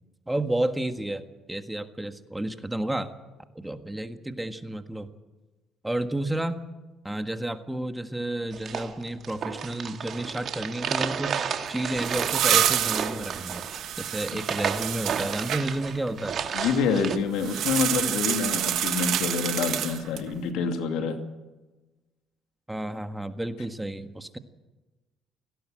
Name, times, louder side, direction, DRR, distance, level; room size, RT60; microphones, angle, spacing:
voice 1, 0.3-1.2 1.5-3.1 3.5-5.1 5.8-6.6 7.0-13.7 14.0-16.4 22.7-24.4, right 1 dB, 10° right, 8 dB, 1.6 m, -31 dB
sound 1, 8.5-17.2, right 7 dB, 55° right, 2.0 m, -32 dB
sound 2, 11.7-15.6 17.4-20.3, right 11 dB, 70° right, 1.6 m, -28 dB
voice 2, 16.5-21.2, left 5 dB, 80° left, 5 dB, 2.4 m, -27 dB
18.0 x 17.0 x 9.0 m, 1.2 s
supercardioid pair, 75°, 0 cm